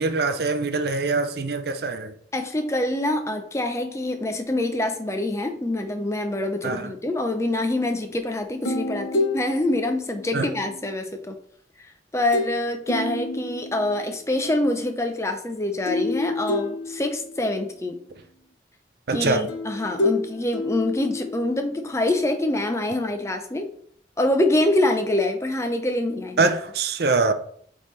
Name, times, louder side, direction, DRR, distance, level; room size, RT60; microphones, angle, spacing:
voice 1, 0.0-2.1 6.6-6.9 10.3-10.5 19.1-19.5 26.4-27.3, right 3 dB, 55° right, 0.5 m, -23 dB
voice 2, 2.3-11.3 12.1-18.0 19.1-23.7 24.2-26.5, left 1 dB, 15° left, 0.5 m, -25 dB
sound 1, 8.6-10.9 12.3-12.6 12.9-14.2 15.9-17.6 19.5-21.8, left 2 dB, 80° left, 0.8 m, -29 dB
8.2 x 3.6 x 3.2 m
head